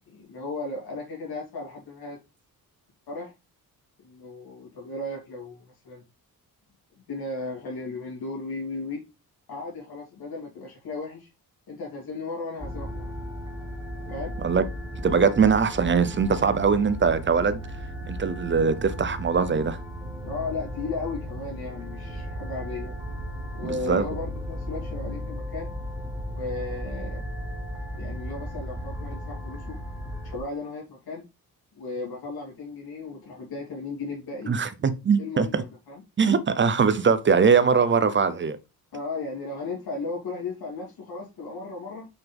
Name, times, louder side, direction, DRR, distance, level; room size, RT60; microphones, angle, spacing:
voice 1, 0.2-2.2 3.1-3.3 4.0-6.0 7.0-9.0 9.5-11.3 11.7-13.1 14.1-14.3 20.2-23.0 23.5-25.7 26.3-27.2 27.9-29.8 30.2-31.2 31.7-34.5 35.2-36.0 38.9-42.1, left 3 dB, 80° left, 3.0 m, -35 dB
sound 1, 12.6-30.4, equal, 10° right, 1.2 m, -35 dB
voice 2, 15.0-17.6 18.1-19.8 23.6-24.0 34.5-35.6 36.2-38.6, right 5 dB, 30° right, 0.7 m, -22 dB
5.8 x 5.8 x 3.5 m
wide cardioid pair, 160°, 36 cm